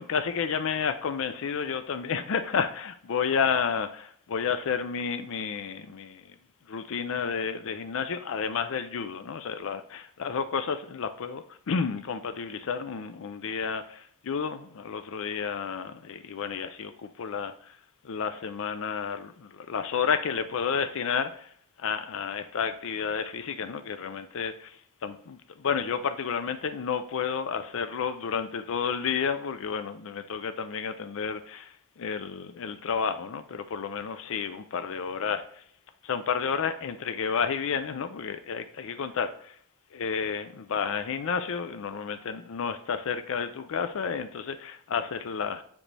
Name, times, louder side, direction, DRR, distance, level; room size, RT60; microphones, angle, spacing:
voice 1, 0.0-6.3 6.7-17.8 18.0-21.5 21.8-35.6 36.0-39.6 39.9-45.6, left 6 dB, 65° left, 10 dB, 0.4 m, -31 dB
7.2 x 5.1 x 3.3 m, 0.64 s
head